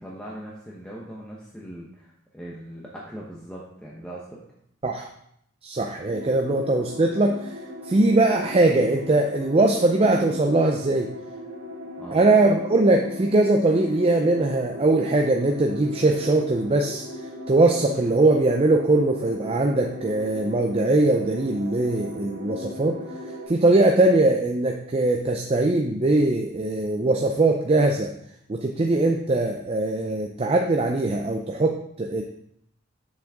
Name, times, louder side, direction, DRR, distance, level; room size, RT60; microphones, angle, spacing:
voice 1, 0.0-4.4 12.0-12.3, right 1 dB, 5° left, -5 dB, 0.9 m, -40 dB
voice 2, 5.6-7.6 7.8-11.1 12.1-17.0 17.5-23.0 23.5-28.1 28.5-32.2, right 2 dB, 30° right, 2 dB, 0.5 m, -21 dB
sound 1, 6.1-23.5, left 1 dB, 65° right, 2.6 m, -38 dB
7.4 x 6.2 x 3.5 m, 0.71 s
head